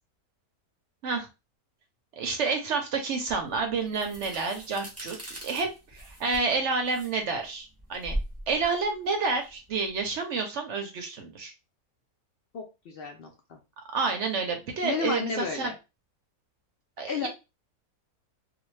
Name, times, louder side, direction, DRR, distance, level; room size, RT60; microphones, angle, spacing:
voice 1, 2.2-8.2 8.5-11.5 13.9-15.7 17.0-17.3, right 4 dB, 65° right, 5 dB, 0.8 m, -29 dB
sound 1, 3.3-10.0, right 1 dB, 10° right, 0.8 m, -40 dB
voice 2, 12.5-13.6 14.8-15.7 17.1-17.3, left 5 dB, 70° left, 3 dB, 0.5 m, -32 dB
2.4 x 2.2 x 3.1 m, 0.27 s
omnidirectional pair, 1.5 m